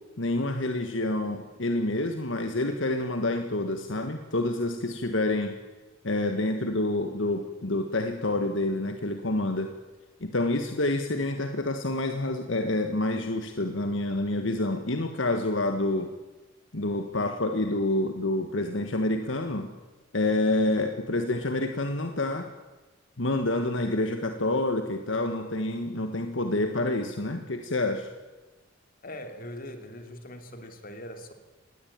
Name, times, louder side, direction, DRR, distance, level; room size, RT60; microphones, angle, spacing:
voice 1, 0.2-5.5 6.0-9.7 10.2-16.1 16.7-19.7 20.1-22.5 23.2-28.1, left 2 dB, 70° left, 6 dB, 1.6 m, -28 dB
voice 2, 29.0-31.3, left 1 dB, 45° left, 7 dB, 3.0 m, -41 dB
25.5 x 20.0 x 8.9 m, 1.2 s
head